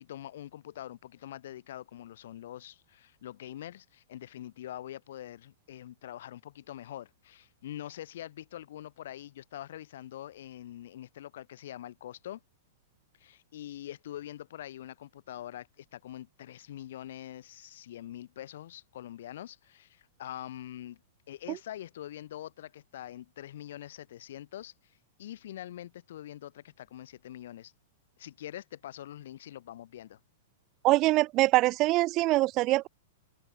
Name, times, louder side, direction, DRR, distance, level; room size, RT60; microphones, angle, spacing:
voice 1, 0.0-12.4 13.2-21.0 21.3-27.7 28.2-30.2, left 12 dB, 70° left, 3.4 m, -44 dB
voice 2, 30.8-32.9, right 19 dB, 40° right, 0.5 m, -24 dB
hypercardioid pair, 130°, 0 cm